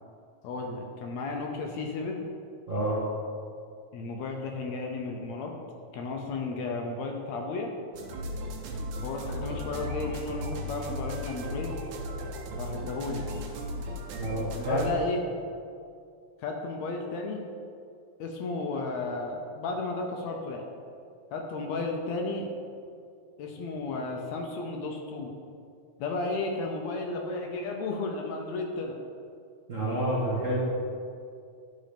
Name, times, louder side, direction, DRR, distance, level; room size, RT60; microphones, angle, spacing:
voice 1, 0.4-2.2 3.9-5.5 5.9-7.7 9.0-11.7 12.6-13.3 14.6-15.2 16.4-17.4 18.2-20.6 21.3-22.5 23.4-25.3 26.0-29.0, left 3 dB, 75° left, 2 dB, 1.8 m, -33 dB
voice 2, 2.7-3.0 14.2-14.8 29.7-30.6, right 1 dB, 40° right, -9 dB, 1.2 m, -29 dB
sound 1, 7.9-14.9, equal, 90° right, 2.2 m, -36 dB
11.5 x 4.0 x 5.1 m, 2.4 s
omnidirectional pair, 3.4 m